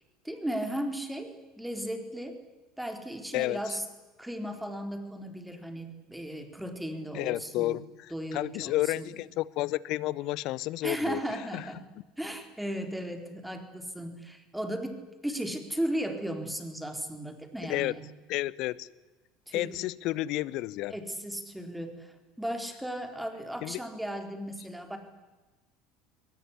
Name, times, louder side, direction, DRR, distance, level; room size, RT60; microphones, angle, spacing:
voice 1, 0.2-2.4 2.8-3.8 4.2-7.8 8.1-9.1 10.8-11.8 12.2-18.0 19.5-19.8 20.9-25.0, right 1 dB, 5° right, 6 dB, 4.3 m, -36 dB
voice 2, 3.3-3.8 7.1-11.6 17.7-17.9 18.3-18.9 19.5-21.0 23.6-23.8, left 17 dB, 55° left, 22 dB, 0.8 m, -31 dB
22.0 x 20.0 x 10.0 m, 1.2 s
figure-of-eight pair, 70°, 0 cm